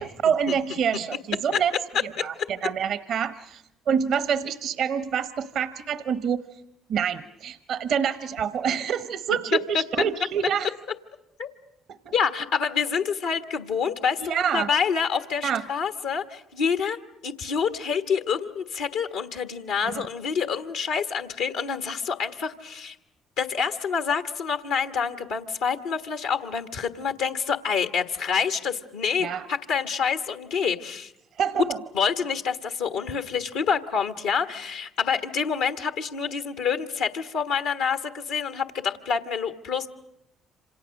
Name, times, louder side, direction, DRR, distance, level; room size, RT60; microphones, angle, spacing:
voice 1, 0.0-1.7 2.0-6.6 6.9-10.7 11.9-12.1 14.2-14.7 15.4-15.6 19.8-20.0 29.2-29.5 31.4-31.8, right 7 dB, 65° right, 13 dB, 0.9 m, -27 dB
voice 2, 12.1-17.0 17.2-23.0 23.4-31.1 31.9-39.9, left 6 dB, 80° left, 7 dB, 1.3 m, -27 dB
28.0 x 26.5 x 6.4 m, 0.81 s
hypercardioid pair, 50°, 0 cm